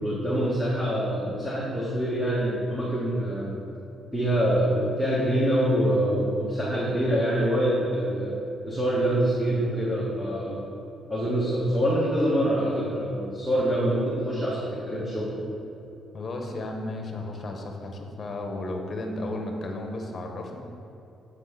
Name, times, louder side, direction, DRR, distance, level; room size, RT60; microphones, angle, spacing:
voice 1, 0.0-3.6 4.1-8.3 8.7-10.5 11.1-15.4, equal, 5° right, -8 dB, 1.7 m, -25 dB
voice 2, 16.1-20.6, left 2 dB, 40° left, 2 dB, 1.2 m, -34 dB
8.2 x 4.5 x 5.8 m, 2.8 s
cardioid pair, 90°, 0 cm